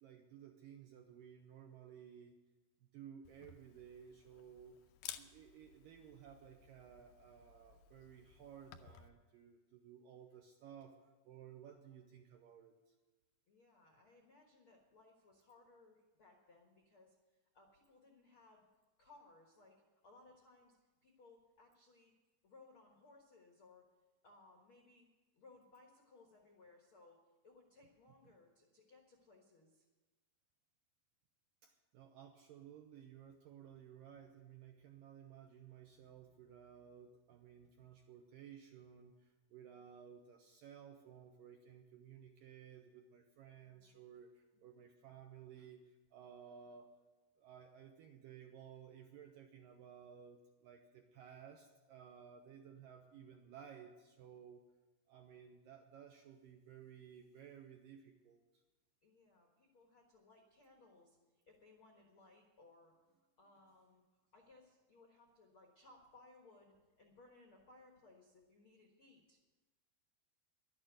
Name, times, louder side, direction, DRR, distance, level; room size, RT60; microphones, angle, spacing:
voice 1, 0.0-2.4 2.8-4.8 5.2-11.0 11.2-12.9 31.6-47.0 47.4-54.6 55.1-58.6, right 8 dB, 75° right, 3 dB, 2.1 m, -57 dB
Camera, 3.2-9.1, left 11 dB, 80° left, 2.3 m, -56 dB
voice 2, 13.5-18.7 19.0-19.8 20.0-22.1 22.4-23.8 24.2-25.1 25.3-27.2 27.4-29.8 43.5-44.0 44.7-44.8 59.0-61.2 61.4-62.9 63.4-64.0 64.3-69.4, left 3 dB, 65° left, 0 dB, 1.3 m, -64 dB
11.5 x 8.8 x 9.3 m, 1.2 s
omnidirectional pair, 4.9 m